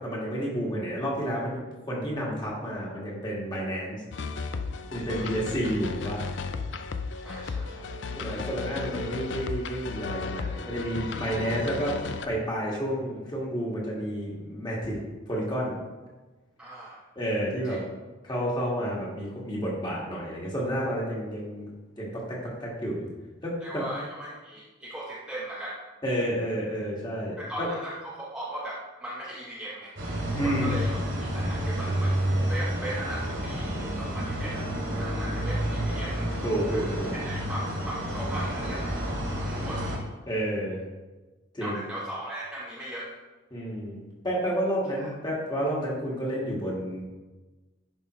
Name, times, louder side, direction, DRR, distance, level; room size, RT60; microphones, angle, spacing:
voice 1, 0.0-1.6 1.9-4.0 4.9-6.2 8.2-12.0 12.3-15.0 15.3-15.8 17.2-17.8 18.2-21.7 22.0-23.1 23.4-23.8 26.0-27.7 30.3-30.8 36.4-37.1 40.3-40.8 41.5-41.8 43.5-47.0, equal, 20° left, -4 dB, 1.9 m, -30 dB
sound 1, 4.1-12.3, left 4 dB, 65° left, 0.5 m, -34 dB
voice 2, 7.2-7.9 16.6-17.0 17.6-17.8 23.6-25.9 27.4-29.9 30.4-36.3 36.7-38.9 39.4-39.8 41.6-43.1 45.0-45.1, right 1 dB, 5° right, -6 dB, 0.8 m, -38 dB
sound 2, 30.0-40.0, equal, 65° right, 2.2 m, -30 dB
10.5 x 5.4 x 3.2 m, 1.2 s
head